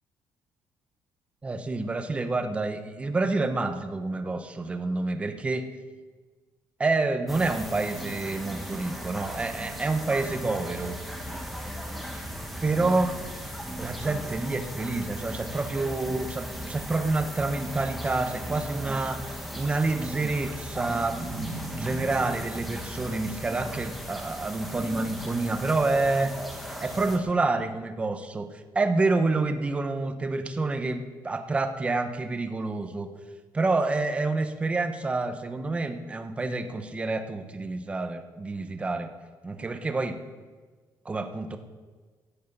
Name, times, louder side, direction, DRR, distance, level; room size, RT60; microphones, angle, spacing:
voice 1, 1.4-5.7 6.8-11.0 12.6-13.2 13.8-19.2 19.6-26.3 26.8-28.5 28.7-33.1 33.5-39.1 39.4-40.2 41.0-41.6, right 3 dB, 15° right, 7 dB, 0.9 m, -28 dB
sound 1, 7.3-27.2, equal, ahead, 1.6 m, -37 dB
17.0 x 10.5 x 5.4 m, 1.4 s
cardioid pair, 170°, 7 cm